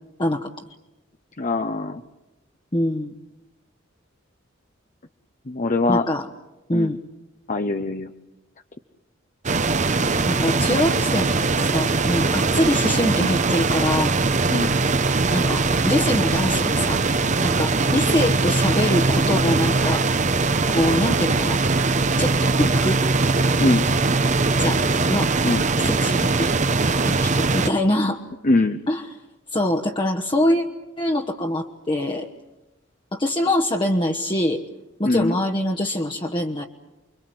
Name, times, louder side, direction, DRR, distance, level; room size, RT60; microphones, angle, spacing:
voice 1, 0.2-0.5 2.7-3.1 5.9-6.3 6.7-7.0 10.2-11.3 11.6-14.1 15.3-17.0 17.4-20.0 20.7-21.6 22.2-23.0 24.6-24.8 25.1-25.3 25.8-26.5 27.0-28.2 28.9-29.0 29.5-30.6 31.0-32.3 33.1-34.6 35.0-36.6, left 1 dB, 25° left, 2 dB, 1.2 m, -24 dB
voice 2, 1.4-2.0 5.5-6.1 6.7-7.0 7.5-8.1 14.5-14.7 23.6-23.9 25.4-25.6 28.4-28.8 35.0-35.3, left 2 dB, 40° left, 7 dB, 0.9 m, -22 dB
sound 1, 9.5-27.7, right 3 dB, 40° right, 0.9 m, -21 dB
30.0 x 23.0 x 7.8 m, 1.0 s
head